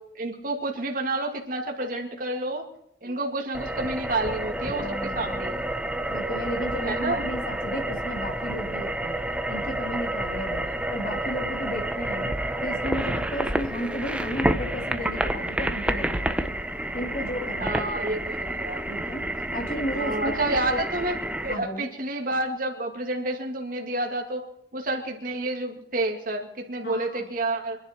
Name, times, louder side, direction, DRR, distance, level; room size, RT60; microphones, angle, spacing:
voice 1, 0.1-2.6 3.0-5.6 6.8-7.3 10.7-10.8 17.6-18.8 19.9-21.2 21.4-24.5 24.7-27.8, right 2 dB, 50° right, 2 dB, 2.2 m, -29 dB
sound 1, 3.5-21.5, right 1 dB, 5° right, 0.8 m, -29 dB
voice 2, 4.8-5.6 6.1-9.2 9.5-10.6 10.9-16.3 16.9-18.3 18.9-20.8 21.5-21.9 26.8-27.3, equal, 50° left, 2 dB, 2.6 m, -34 dB
25.5 x 11.0 x 4.4 m, 0.76 s
head